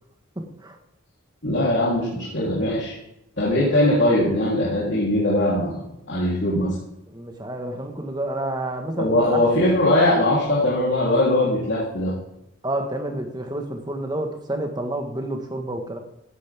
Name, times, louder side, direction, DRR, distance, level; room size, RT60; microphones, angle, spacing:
voice 1, 0.4-0.8 7.1-9.4 12.6-16.0, right 1 dB, 20° right, 4 dB, 1.7 m, -29 dB
voice 2, 1.4-3.0 3.4-5.8 6.1-6.7 9.0-12.1, left 1 dB, 60° left, -7 dB, 3.8 m, -20 dB
16.5 x 11.0 x 3.7 m, 0.87 s
head